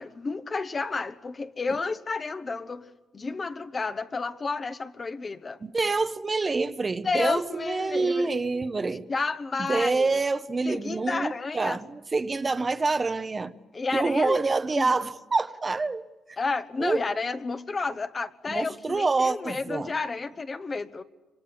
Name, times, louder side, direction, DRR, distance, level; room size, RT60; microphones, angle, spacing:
voice 1, 0.0-2.9 3.1-5.6 7.0-8.3 8.8-10.1 10.6-11.8 13.7-14.4 14.7-14.9 16.4-21.0, left 4 dB, 35° left, 1.2 m, -31 dB
voice 2, 5.6-9.1 9.7-13.5 13.9-16.0 16.8-17.1 18.5-19.9, right 3 dB, 30° right, 0.9 m, -26 dB
26.0 x 24.5 x 8.6 m
cardioid pair, 90°, 0 cm